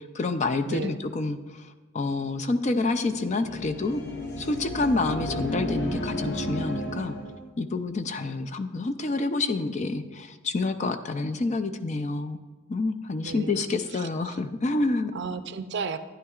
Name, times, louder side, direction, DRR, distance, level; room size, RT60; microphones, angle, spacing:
voice 1, 0.1-1.7 1.9-4.0 4.4-7.1 7.6-12.4 12.7-15.1, left 3 dB, 35° left, 8 dB, 0.4 m, -28 dB
voice 2, 0.7-1.0 13.2-14.4 15.1-16.0, right 5 dB, 55° right, 11 dB, 0.4 m, -35 dB
sound 1, 2.9-7.5, equal, 55° left, 1.1 m, -33 dB
12.5 x 10.0 x 2.4 m, 1.3 s
head